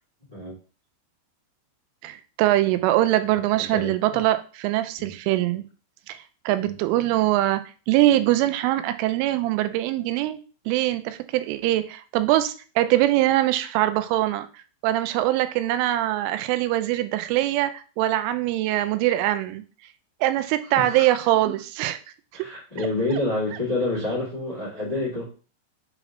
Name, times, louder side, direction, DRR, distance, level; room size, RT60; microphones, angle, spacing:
voice 1, 2.0-5.7 6.1-6.2 6.5-10.4 10.7-14.5 14.8-19.6 20.2-22.0, right 14 dB, 90° right, 3.1 m, -23 dB
voice 2, 3.6-3.9 5.0-5.1 6.6-6.7 20.7-21.1 21.4-21.5 22.3-25.2, left 2 dB, 15° left, 0.7 m, -28 dB
7.4 x 3.4 x 3.8 m
omnidirectional pair, 5.5 m